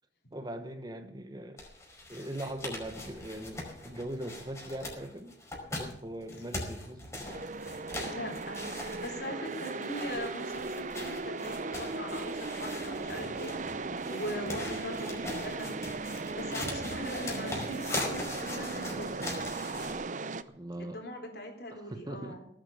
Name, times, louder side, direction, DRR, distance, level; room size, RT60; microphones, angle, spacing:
voice 1, 0.3-1.6 2.1-5.3 5.7-7.3 20.4-21.0 21.7-22.4, right 1 dB, 25° right, 8 dB, 1.3 m, -40 dB
sound 1, 1.6-20.0, left 2 dB, 15° left, 5.2 m, -41 dB
sound 2, 7.2-20.4, right 3 dB, 45° right, 0.7 m, -37 dB
voice 2, 8.0-15.7 16.3-19.3 20.8-22.5, equal, 65° left, 3 dB, 4.0 m, -41 dB
18.5 x 9.3 x 7.0 m, 0.68 s
head